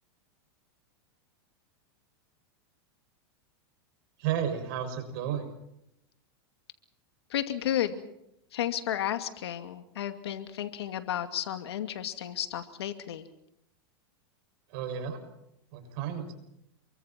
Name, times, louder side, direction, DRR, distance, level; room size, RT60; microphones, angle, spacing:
voice 1, 4.2-5.5 14.7-15.2 15.7-16.3, right 9 dB, 60° right, 6 dB, 6.6 m, -32 dB
voice 2, 7.3-8.0 8.5-13.2, left 11 dB, 85° left, 8 dB, 2.4 m, -32 dB
29.0 x 23.5 x 4.5 m, 0.80 s
supercardioid pair, 130°, 13 cm